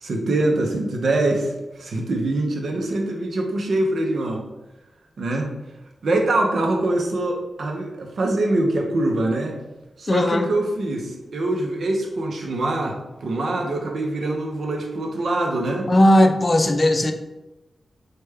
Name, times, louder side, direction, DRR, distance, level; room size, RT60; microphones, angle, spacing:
voice 1, 0.0-4.4 5.2-5.5 6.0-9.5 10.0-15.9, right 2 dB, 70° right, 2 dB, 0.5 m, -24 dB
voice 2, 10.1-10.5 15.9-17.1, left 1 dB, 40° left, 6 dB, 0.4 m, -17 dB
3.2 x 2.2 x 3.3 m, 1.0 s
cardioid pair, 50°, 0 cm